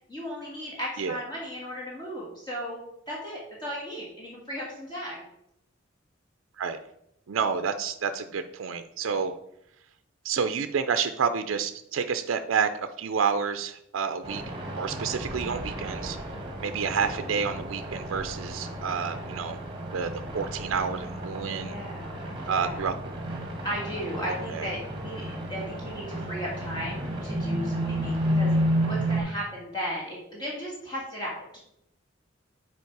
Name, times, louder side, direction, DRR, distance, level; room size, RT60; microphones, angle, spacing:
voice 1, 0.1-2.8 3.1-5.2 16.3-16.7 21.4-22.9 23.6-28.5 28.9-31.6, equal, 20° left, -5 dB, 1.7 m, -36 dB
voice 2, 7.3-9.3 10.2-12.7 13.0-14.4 14.8-16.2 16.6-19.6 19.9-21.7 22.5-22.9 24.5-24.7, right 6 dB, 75° right, 9 dB, 0.4 m, -29 dB
sound 1, 14.2-29.2, right 1 dB, 25° right, 1.2 m, -32 dB
7.0 x 4.4 x 4.6 m, 0.78 s
head